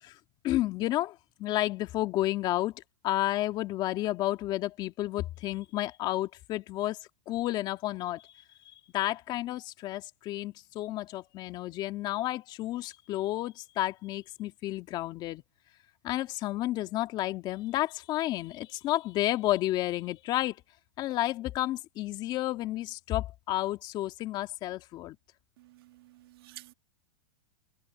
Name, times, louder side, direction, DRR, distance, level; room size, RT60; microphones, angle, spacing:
voice 1, 0.4-7.0 7.3-15.4 16.0-20.6 21.0-25.2, left 15 dB, 35° left, 2.2 m, -31 dB
voice 2, 25.6-26.7, right 17 dB, 65° right, 2.1 m, -51 dB
supercardioid pair, 145°, 14 cm